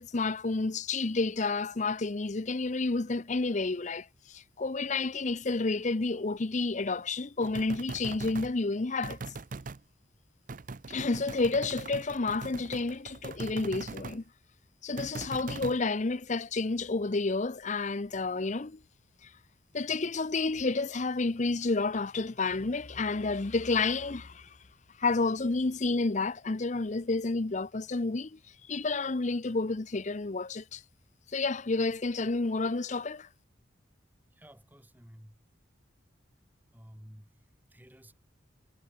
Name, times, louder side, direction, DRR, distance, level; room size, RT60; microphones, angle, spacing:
voice 1, 0.0-9.2 10.9-14.2 14.8-18.8 19.7-24.5 25.0-28.4 28.7-30.8 31.3-33.3, left 3 dB, 40° left, 0.7 m, -30 dB
sound 1, 7.4-8.6 9.0-9.8 10.5-14.2 15.0-15.8, right 3 dB, 45° right, 0.6 m, -41 dB
voice 2, 34.3-35.5 36.7-38.1, equal, 10° right, 3.5 m, -53 dB
head